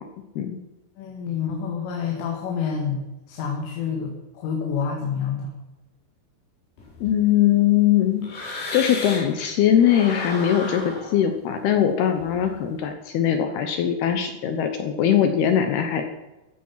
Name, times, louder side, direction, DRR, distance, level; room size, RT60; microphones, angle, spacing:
voice 1, 1.0-3.0 3.3-5.5, left 6 dB, 90° left, 1 dB, 4.5 m, -28 dB
sound 1, 6.8-9.4 9.7-12.8, left 2 dB, 55° left, 6.7 m, -35 dB
voice 2, 7.0-16.1, left 10 dB, 75° left, 6 dB, 2.5 m, -21 dB
15.0 x 14.0 x 5.7 m, 1.1 s
omnidirectional pair, 5.6 m